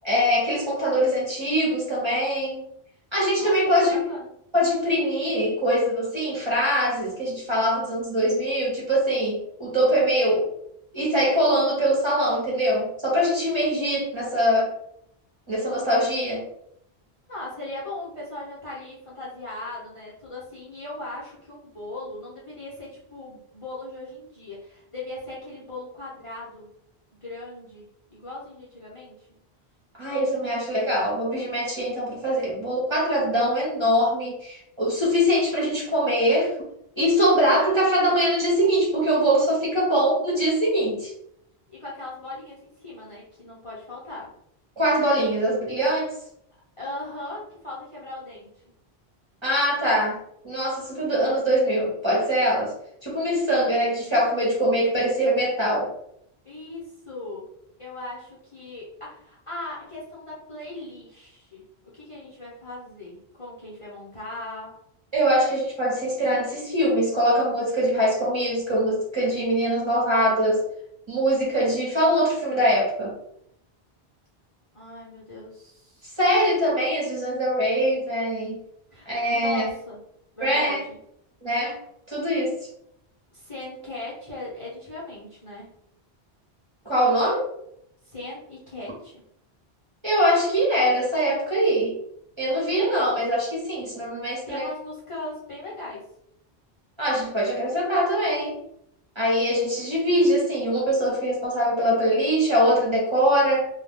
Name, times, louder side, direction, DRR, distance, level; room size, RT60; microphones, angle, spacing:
voice 1, 0.0-2.6 3.1-4.0 4.5-10.5 10.9-14.7 15.5-16.5 29.9-36.5 37.0-41.1 44.8-46.2 49.4-52.7 53.0-55.9 65.1-70.6 71.1-73.1 76.2-78.6 79.1-79.7 80.4-80.8 81.4-81.8 82.1-82.6 86.8-87.5 90.0-92.0 92.4-94.7 97.0-98.6 99.1-103.7, equal, 30° right, -5 dB, 0.9 m, -23 dB
voice 2, 3.3-4.3 17.3-26.7 27.2-29.3 37.5-37.7 41.7-44.3 46.8-48.5 56.4-57.5 57.8-64.8 74.7-76.2 78.9-80.0 80.4-81.0 83.3-85.7 88.0-89.2 94.4-96.1, left 2 dB, 35° left, -7 dB, 0.8 m, -38 dB
2.3 x 2.3 x 3.4 m, 0.75 s
omnidirectional pair, 1.1 m